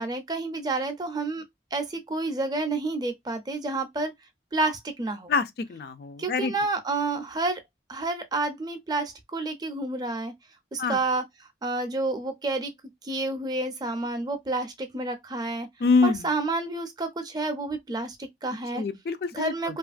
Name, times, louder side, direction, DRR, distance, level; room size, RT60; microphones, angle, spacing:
voice 1, 0.0-1.4 1.7-4.1 4.5-5.3 6.2-7.6 7.9-10.3 10.7-11.2 11.6-12.7 13.0-15.7 16.0-18.8 19.3-19.8, right 2 dB, 20° right, 0.4 m, -29 dB
voice 2, 5.3-6.5 10.8-11.0 15.8-16.3 18.7-19.8, left 4 dB, 60° left, 0.4 m, -25 dB
2.8 x 2.4 x 2.4 m
head